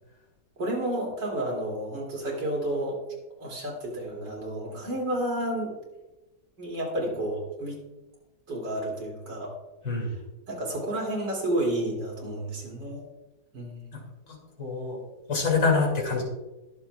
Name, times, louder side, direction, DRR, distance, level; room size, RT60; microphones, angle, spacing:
voice 1, 0.6-3.0 3.4-5.8 6.6-7.8 8.5-9.5 10.0-10.2 10.5-13.0 13.5-13.9, right 1 dB, 80° right, -1 dB, 3.5 m, -31 dB
voice 2, 14.6-15.0 15.3-16.2, left 4 dB, 90° left, 0 dB, 3.3 m, -25 dB
21.5 x 7.3 x 2.4 m, 1.1 s
omnidirectional pair, 1.9 m